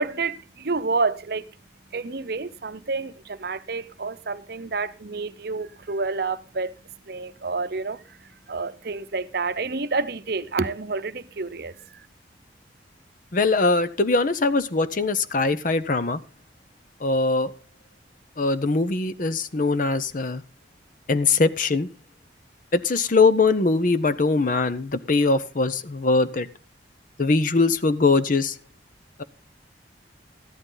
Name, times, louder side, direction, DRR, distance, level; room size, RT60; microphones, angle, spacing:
voice 1, 0.0-1.5 1.9-6.8 7.1-12.1, right 4 dB, 55° right, 0.8 m, -29 dB
voice 2, 13.3-16.2 17.0-17.5 18.4-20.4 21.1-21.9 22.7-26.5 27.2-28.5, left 3 dB, 45° left, 0.7 m, -21 dB
14.0 x 11.5 x 3.9 m
head